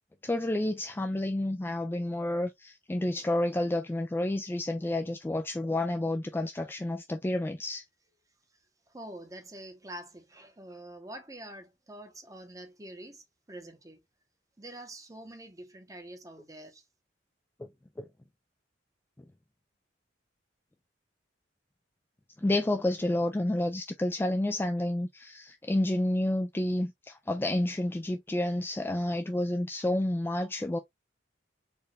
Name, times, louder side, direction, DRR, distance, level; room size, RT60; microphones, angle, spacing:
voice 1, 0.2-7.8 18.0-18.1 22.4-30.8, left 1 dB, 10° left, 0.3 m, -30 dB
voice 2, 8.9-14.0 14.6-16.8, right 1 dB, 20° right, 0.9 m, -46 dB
4.4 x 2.4 x 3.1 m
head